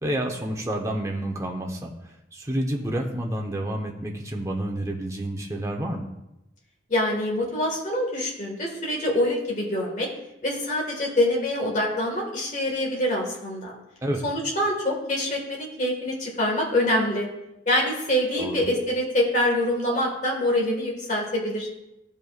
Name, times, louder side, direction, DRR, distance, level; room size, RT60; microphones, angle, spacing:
voice 1, 0.0-6.1 14.0-14.2 18.4-18.6, right 1 dB, 15° right, 0 dB, 0.9 m, -29 dB
voice 2, 6.9-10.1 10.4-13.7 14.2-17.3 17.7-21.7, left 1 dB, 40° left, -1 dB, 1.7 m, -25 dB
15.0 x 5.4 x 2.4 m, 0.90 s
head